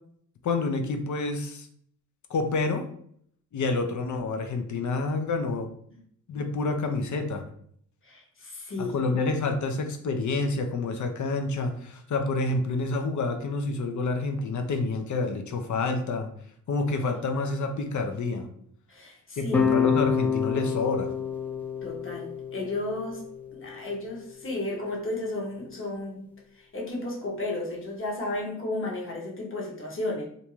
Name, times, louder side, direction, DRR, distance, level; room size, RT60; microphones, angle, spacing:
voice 1, 0.4-1.7 2.3-2.9 3.5-5.7 6.3-7.5 8.8-16.3 16.7-18.5 19.4-21.1, left 3 dB, 60° left, 6 dB, 0.6 m, -28 dB
voice 2, 8.0-8.9 18.9-19.7 21.8-23.2 23.5-26.2 26.5-30.2, left 2 dB, 35° left, -2 dB, 1.0 m, -33 dB
sound 1, 19.5-24.6, left 7 dB, 5° left, 0.5 m, -29 dB
2.6 x 2.2 x 3.0 m, 0.64 s
cardioid pair, 50°, 34 cm